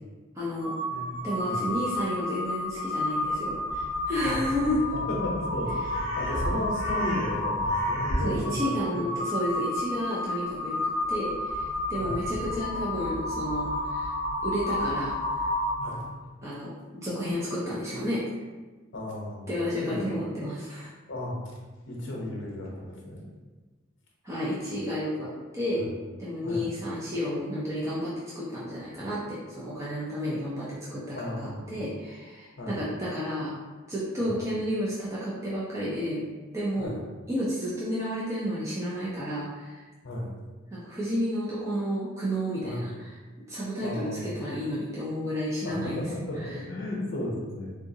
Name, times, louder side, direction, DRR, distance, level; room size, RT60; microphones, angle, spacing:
voice 1, 0.3-0.7 1.2-4.8 8.2-10.8 11.1-14.1 14.4-15.5 16.4-16.7 17.0-18.2 19.5-20.9 24.2-25.9 26.2-33.5 33.9-36.2 36.5-37.0 37.3-39.8 40.7-43.1 43.5-46.0 46.4-46.5, equal, 15° right, -9 dB, 0.5 m, -31 dB
Crow, 0.6-16.1, left 1 dB, 65° right, 1.0 m, -30 dB
voice 2, 0.9-1.6 4.2-4.4 4.9-9.1 12.0-12.2 15.8-16.0 18.9-19.5 19.8-20.1 21.1-21.4 21.9-23.3 25.7-25.9 26.4-26.6 31.1-31.7 32.6-32.8 34.2-34.3 36.8-37.0 40.0-40.3 42.6-42.9 43.8-44.4 45.6-47.7, left 1 dB, 60° left, -2 dB, 0.8 m, -34 dB
3.7 x 2.4 x 2.7 m, 1.3 s
head